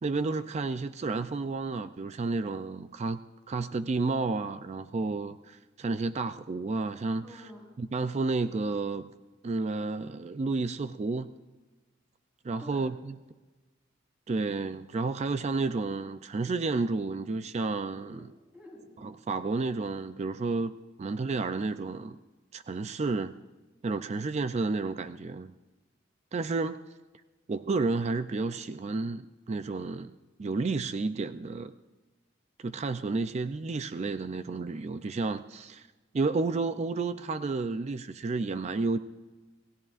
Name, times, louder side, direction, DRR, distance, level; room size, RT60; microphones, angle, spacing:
voice 1, 0.0-3.2 3.5-7.3 7.8-9.1 9.4-11.3 12.4-13.2 14.3-18.3 19.0-20.7 21.0-22.2 22.5-23.3 23.8-25.5 26.3-26.8 27.5-30.1 30.4-31.7 32.6-35.9 36.1-39.0, right 3 dB, 35° right, 11 dB, 0.4 m, -31 dB
voice 2, 7.2-7.7 12.6-12.9 18.0-18.9, equal, 5° right, -2 dB, 4.2 m, -49 dB
28.5 x 16.5 x 2.5 m, 1.2 s
head